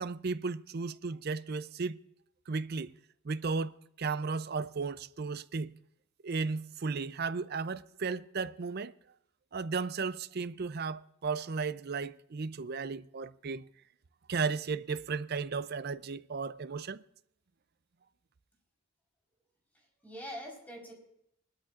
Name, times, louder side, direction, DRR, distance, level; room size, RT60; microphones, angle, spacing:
voice 1, 0.0-2.0 2.5-2.9 3.2-5.7 6.2-8.9 9.5-13.7 14.3-17.0, right 4 dB, 45° right, 0.5 m, -35 dB
voice 2, 19.7-20.9, equal, 10° left, 4.2 m, -44 dB
20.5 x 13.0 x 2.5 m
head